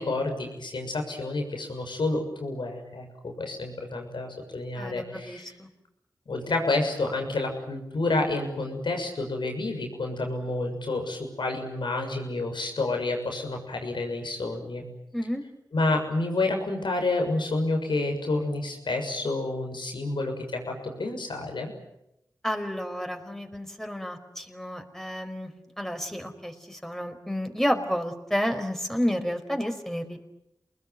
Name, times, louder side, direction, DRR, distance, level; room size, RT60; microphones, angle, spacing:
voice 1, 0.0-5.5 6.3-14.8 15.7-21.7, left 2 dB, 90° left, 4 dB, 6.7 m, -29 dB
voice 2, 4.7-5.7 15.1-15.4 22.4-25.5 25.8-30.2, equal, 5° left, 5 dB, 5.1 m, -30 dB
29.0 x 21.0 x 9.6 m, 0.84 s
cardioid pair, 45°, 8 cm